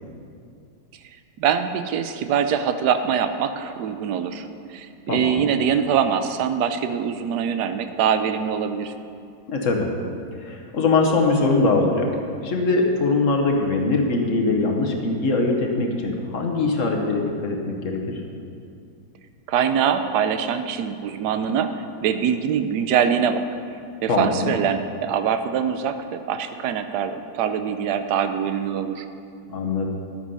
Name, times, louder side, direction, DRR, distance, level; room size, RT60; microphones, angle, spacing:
voice 1, 1.4-8.9 19.5-21.7 22.0-23.5 24.0-29.1, right 8 dB, 70° right, 9 dB, 1.1 m, -23 dB
voice 2, 5.1-5.5 9.5-9.9 10.4-12.1 12.4-18.2 24.1-24.5 29.5-29.9, left 3 dB, 50° left, 1 dB, 1.2 m, -22 dB
11.5 x 8.2 x 5.5 m, 2.4 s
omnidirectional pair, 2.0 m